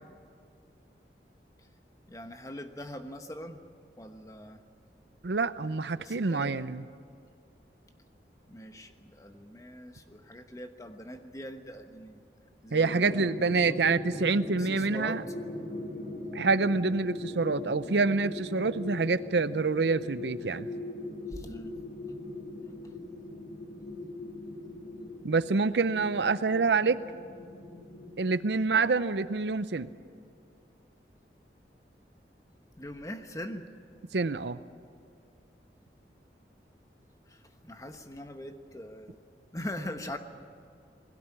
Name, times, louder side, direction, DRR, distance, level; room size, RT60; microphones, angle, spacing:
voice 1, 2.1-3.6 4.0-4.6 6.0-6.5 8.5-12.2 12.6-13.8 14.6-15.2 21.3-21.7 28.7-28.9 32.8-33.7 37.3-39.2 39.5-40.2, left 1 dB, 20° left, 7 dB, 1.2 m, -42 dB
voice 2, 5.2-6.8 12.7-15.2 16.3-20.7 25.2-27.0 28.2-29.9 34.1-34.6, right 4 dB, 80° right, 14 dB, 0.7 m, -27 dB
sound 1, 12.8-28.4, left 2 dB, 50° left, 2.5 m, -40 dB
21.0 x 17.0 x 9.9 m, 2.3 s
head